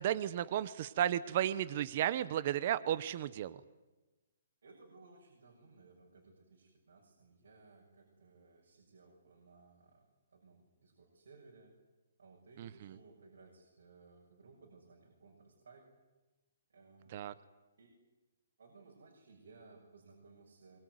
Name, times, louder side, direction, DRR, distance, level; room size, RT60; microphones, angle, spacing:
voice 1, 0.0-3.6 12.6-13.0 17.1-17.3, right 11 dB, 35° right, 16 dB, 0.8 m, -34 dB
voice 2, 4.6-11.7 12.2-15.9 16.7-17.4 17.8-17.9 18.6-20.8, right 3 dB, 80° right, -1 dB, 6.7 m, -60 dB
24.0 x 23.0 x 9.5 m, 1.1 s
hypercardioid pair, 175°, 0 cm